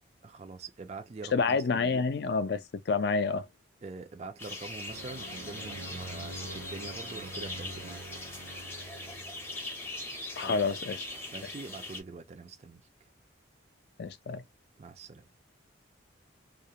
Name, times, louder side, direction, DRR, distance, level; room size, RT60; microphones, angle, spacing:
voice 1, 0.2-1.9 3.8-8.0 10.4-10.6 11.3-12.8 14.8-15.3, right 4 dB, 35° right, 0.3 m, -44 dB
voice 2, 1.3-3.5 10.4-11.1 14.0-14.4, left 4 dB, 55° left, 0.4 m, -28 dB
sound 1, 4.4-12.0, left 2 dB, 10° left, 0.6 m, -41 dB
sound 2, 4.9-10.0, right 2 dB, 80° right, 0.9 m, -45 dB
2.4 x 2.1 x 2.8 m
head